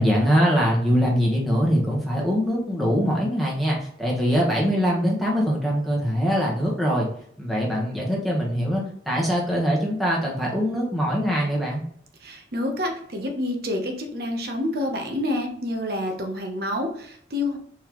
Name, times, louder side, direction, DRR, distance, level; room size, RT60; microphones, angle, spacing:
voice 1, 0.0-7.1 7.4-11.8, equal, ahead, -4 dB, 1.3 m, -23 dB
voice 2, 12.2-17.6, left 1 dB, 55° right, 3 dB, 1.0 m, -28 dB
4.5 x 3.7 x 3.1 m, 0.64 s
head